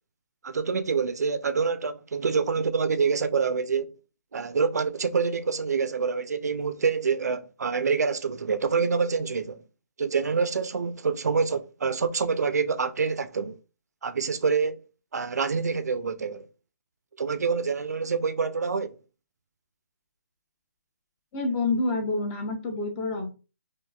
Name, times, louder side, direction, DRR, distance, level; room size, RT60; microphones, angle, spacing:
voice 1, 0.4-3.9 4.3-9.6 10.0-13.6 14.0-14.8 15.1-16.5 17.2-19.0, right 5 dB, 80° right, 0.4 m, -26 dB
voice 2, 21.3-23.3, left 3 dB, 15° left, 0.5 m, -28 dB
3.6 x 2.5 x 2.3 m
hypercardioid pair, 160°, 9 cm